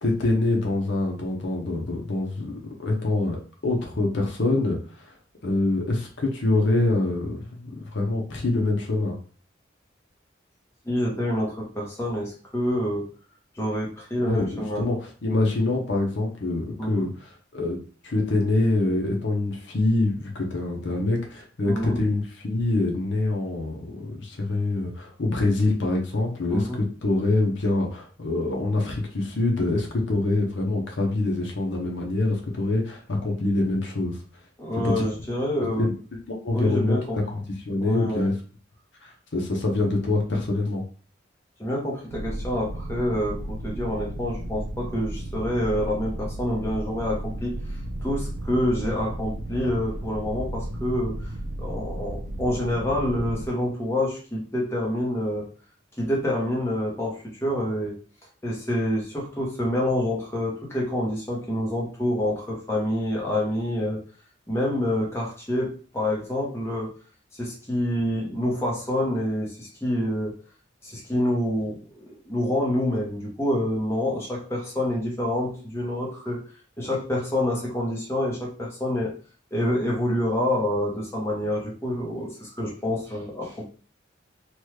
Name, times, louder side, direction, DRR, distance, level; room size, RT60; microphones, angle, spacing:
voice 1, 0.0-5.1 5.4-9.2 14.2-17.8 18.0-34.2 34.8-35.1 35.8-35.9 36.3-38.3 39.0-40.8, left 2 dB, 70° left, 1 dB, 0.7 m, -25 dB
voice 2, 10.8-13.1 13.5-14.9 16.8-17.1 21.6-22.0 26.5-26.8 34.6-35.9 36.5-37.2 37.8-38.3 41.6-51.3 51.6-55.5 56.0-58.0 58.4-64.0 64.5-66.9 67.3-70.3 70.8-76.5 76.8-79.1 79.5-83.6, left 1 dB, 15° left, -4 dB, 0.8 m, -27 dB
sound 1, 42.1-53.5, right 1 dB, 60° right, 0.4 m, -34 dB
3.0 x 2.3 x 3.2 m, 0.40 s
head